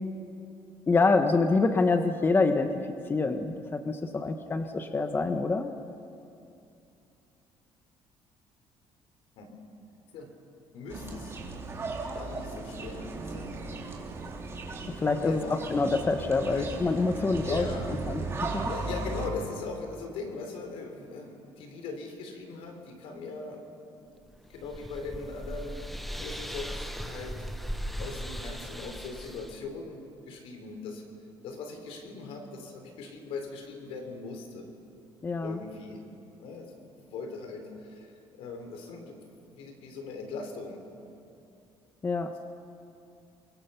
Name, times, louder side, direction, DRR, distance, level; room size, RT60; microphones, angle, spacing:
voice 1, 0.9-2.8 3.1-5.7 15.0-17.6 18.1-18.6 35.2-35.6 42.0-42.3, left 3 dB, 25° left, 7 dB, 1.1 m, -26 dB
voice 2, 10.7-11.4 12.1-13.7 15.2-15.6 16.5-16.8 17.3-18.0 18.3-18.4 18.6-23.7 23.9-24.0 24.3-25.9 26.2-27.4 28.0-30.0 30.3-31.0 31.4-34.7 35.4-36.1 36.4-39.3 39.5-40.8, left 4 dB, 80° left, 4 dB, 4.1 m, -40 dB
sound 1, 10.9-19.3, right 3 dB, 25° right, 3.3 m, -36 dB
sound 2, 24.3-29.6, equal, ahead, 1.1 m, -38 dB
29.0 x 23.0 x 5.8 m, 2.6 s
cardioid pair, 120°, 10 cm